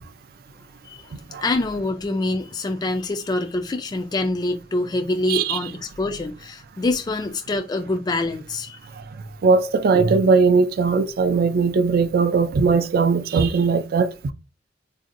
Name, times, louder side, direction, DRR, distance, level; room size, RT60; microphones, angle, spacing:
voice 1, 1.4-8.8 13.3-13.4, left 2 dB, 20° left, 0.3 m, -25 dB
voice 2, 5.3-5.6 9.4-14.3, right 4 dB, 55° right, 0.3 m, -19 dB
3.8 x 2.6 x 2.5 m
head